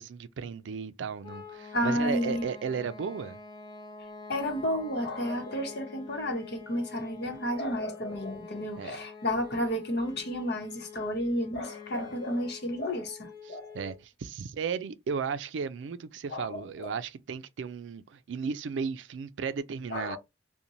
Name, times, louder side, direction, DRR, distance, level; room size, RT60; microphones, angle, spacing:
voice 1, 0.0-3.4 8.8-9.0 13.5-20.2, right 6 dB, 85° right, 0.4 m, -35 dB
sound 1, 1.2-14.0, left 5 dB, 25° left, 0.5 m, -47 dB
voice 2, 1.7-2.4 4.3-13.7 16.3-16.9 19.9-20.2, equal, 65° left, 0.9 m, -32 dB
2.6 x 2.1 x 2.9 m
head